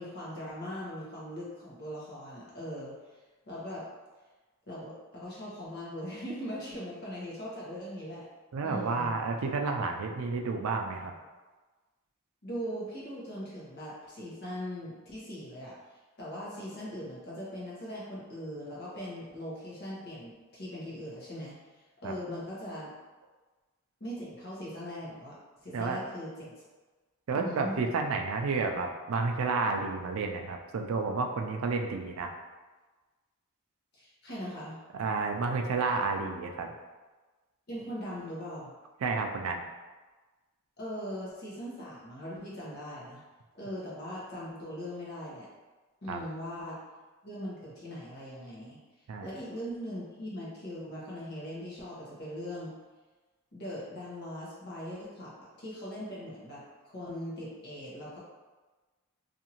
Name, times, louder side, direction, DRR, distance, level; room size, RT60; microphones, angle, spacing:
voice 1, 0.0-2.9 3.5-3.9 4.7-8.3 8.6-9.1 12.4-15.7 16.2-21.5 22.0-22.9 24.0-25.3 25.6-26.5 27.3-27.9 33.9-34.8 37.7-38.7 40.8-43.2 43.5-45.5 46.0-46.8 47.2-48.8 49.2-52.7 53.5-58.2, equal, 50° left, -6 dB, 1.0 m, -40 dB
voice 2, 8.5-11.1 22.0-22.2 25.7-26.1 27.3-32.3 34.9-36.7 39.0-39.6 46.1-46.2 49.1-49.3, right 4 dB, 85° right, 3 dB, 0.4 m, -31 dB
2.7 x 2.5 x 2.9 m, 1.3 s
head